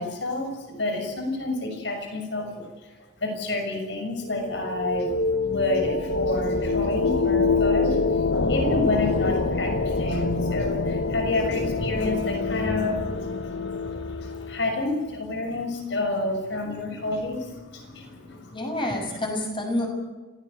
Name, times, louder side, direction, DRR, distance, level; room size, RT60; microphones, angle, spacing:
voice 1, 0.0-2.7 3.2-5.2 5.4-13.3 13.8-18.6, left 2 dB, 65° left, 4 dB, 6.5 m, -29 dB
sound 1, 4.3-14.9, left 3 dB, 80° left, 1.3 m, -26 dB
voice 2, 18.5-19.9, left 1 dB, 25° left, 2 dB, 6.5 m, -28 dB
27.5 x 17.5 x 8.1 m, 1.2 s
head